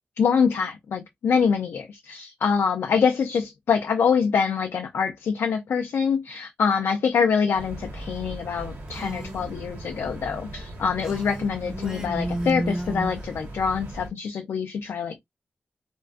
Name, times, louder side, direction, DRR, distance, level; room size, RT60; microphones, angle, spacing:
voice 1, 0.2-15.3, left 6 dB, 90° left, 0.3 m, -25 dB
sound 1, 7.5-14.1, right 1 dB, 85° right, 0.8 m, -38 dB
Female speech woman speaking, 8.9-9.5 11.0-13.3, right 1 dB, 20° right, 0.5 m, -32 dB
2.4 x 2.2 x 2.3 m
wide cardioid pair, 160°, 4 cm